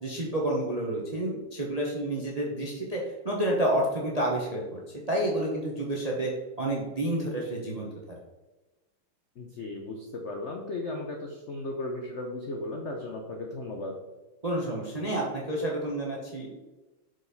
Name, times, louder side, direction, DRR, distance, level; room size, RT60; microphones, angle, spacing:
voice 1, 0.0-4.8 5.1-6.3 6.6-8.2 14.4-16.6, right 1 dB, 45° right, -2 dB, 0.5 m, -29 dB
voice 2, 9.4-13.9, left 2 dB, 85° left, 1 dB, 0.6 m, -36 dB
6.2 x 5.0 x 4.1 m, 1.1 s
omnidirectional pair, 2.3 m